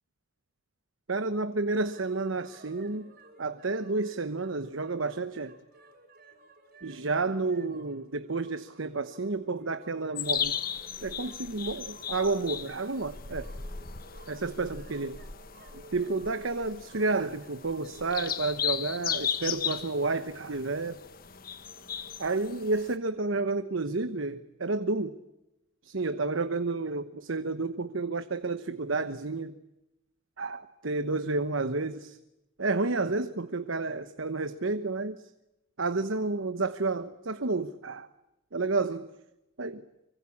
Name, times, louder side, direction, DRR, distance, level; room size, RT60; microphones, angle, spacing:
voice 1, 1.1-3.1 3.4-5.6 6.8-10.6 11.0-13.5 14.3-15.2 15.9-21.0 22.2-25.2 25.8-29.6 30.4-32.2 32.6-35.2 35.8-38.1 38.5-39.1 39.6-39.8, right 3 dB, 75° right, 1.0 m, -30 dB
sound 1, 1.7-18.2, right 2 dB, 50° right, 4.8 m, -55 dB
sound 2, 10.2-22.9, left 8 dB, 45° left, 1.4 m, -36 dB
25.5 x 24.5 x 8.5 m
head